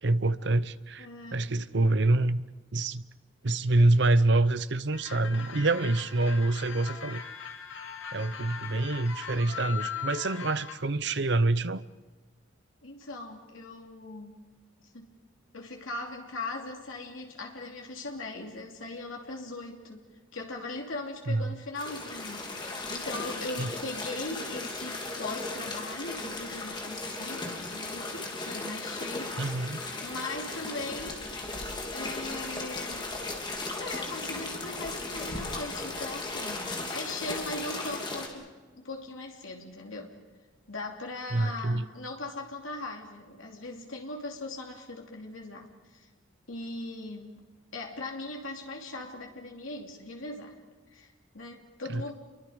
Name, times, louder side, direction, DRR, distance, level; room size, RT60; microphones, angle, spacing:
voice 1, 0.0-1.1 1.3-2.4 2.7-3.0 3.4-7.2 8.1-11.8 21.3-21.5 23.6-23.7 29.4-29.8 41.3-41.9 51.9-52.0, right 2 dB, 60° right, 0.8 m, -26 dB
voice 2, 1.0-1.4 12.8-14.4 14.9-15.1 15.5-20.0 20.3-29.7 30.0-31.3 31.9-33.1 33.7-40.1 40.7-46.1 46.5-47.4 47.7-50.5 50.9-52.1, left 2 dB, 85° left, 2.8 m, -39 dB
sound 1, 4.9-10.7, left 7 dB, 65° left, 2.3 m, -40 dB
sound 2, 21.8-38.3, left 2 dB, 25° left, 3.0 m, -36 dB
29.5 x 23.5 x 5.1 m
head